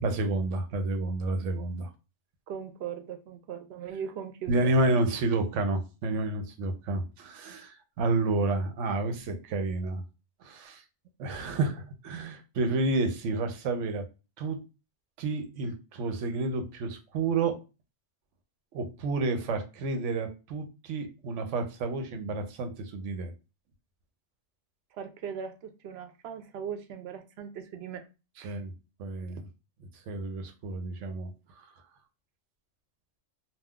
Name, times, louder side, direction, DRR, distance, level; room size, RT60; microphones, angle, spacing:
voice 1, 0.0-1.9 4.5-10.0 10.4-10.8 11.2-14.0 14.4-14.6 15.2-17.6 18.7-23.3 28.4-28.7 29.0-29.4 30.1-31.3 31.6-31.7, right 2 dB, 90° right, 0.9 m, -30 dB
voice 2, 2.5-4.7 25.0-28.1 28.4-28.6, right 8 dB, 65° right, 0.8 m, -39 dB
2.3 x 2.2 x 3.5 m
omnidirectional pair, 1.2 m